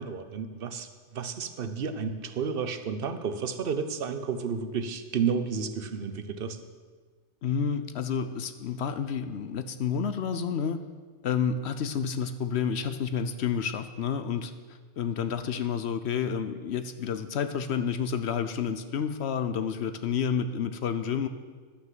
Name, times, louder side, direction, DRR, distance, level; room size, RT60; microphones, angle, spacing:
voice 1, 0.0-6.6, right 6 dB, 50° right, 9 dB, 0.8 m, -31 dB
voice 2, 7.4-10.8 11.2-14.5 15.0-21.3, left 7 dB, 60° left, 10 dB, 0.8 m, -30 dB
11.5 x 6.5 x 7.4 m, 1.5 s
omnidirectional pair, 1.4 m